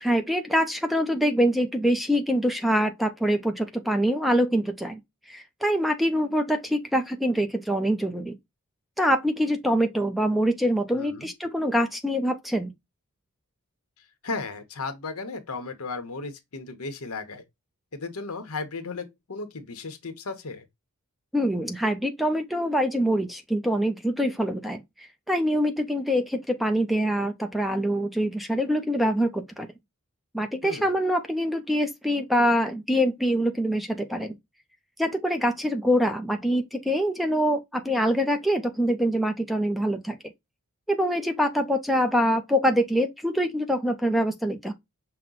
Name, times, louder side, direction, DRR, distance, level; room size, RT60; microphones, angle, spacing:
voice 1, 0.0-5.0 5.3-8.3 9.0-12.7 21.3-24.8 25.3-29.7 30.3-34.4 35.0-40.2 40.9-44.7, equal, ahead, 0.5 m, -24 dB
voice 2, 10.9-11.3 14.2-17.4 17.9-20.7 30.6-30.9, left 3 dB, 80° left, 1.0 m, -35 dB
5.8 x 2.2 x 3.8 m
head